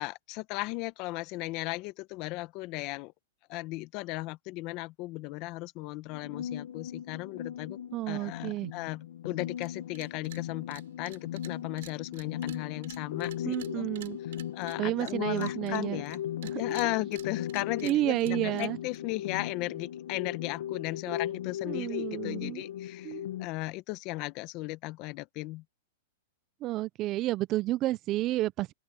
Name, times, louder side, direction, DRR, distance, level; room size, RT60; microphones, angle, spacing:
voice 1, 0.0-3.1 3.5-7.8 8.1-13.8 14.5-16.2 16.6-25.6, left 21 dB, 35° left, 0.9 m, -36 dB
sound 1, 6.1-23.5, left 10 dB, 75° left, 1.0 m, -38 dB
voice 2, 7.9-8.7 13.4-14.2 14.8-16.0 16.5-16.9 17.8-18.8 21.7-22.6 23.0-23.3 26.6-28.7, right 16 dB, 30° right, 0.4 m, -31 dB
sound 2, 9.6-9.7 10.0-10.4 10.7-16.2 16.4-19.0, right 13 dB, 65° right, 7.8 m, -49 dB
open air
supercardioid pair, 160°, 0 cm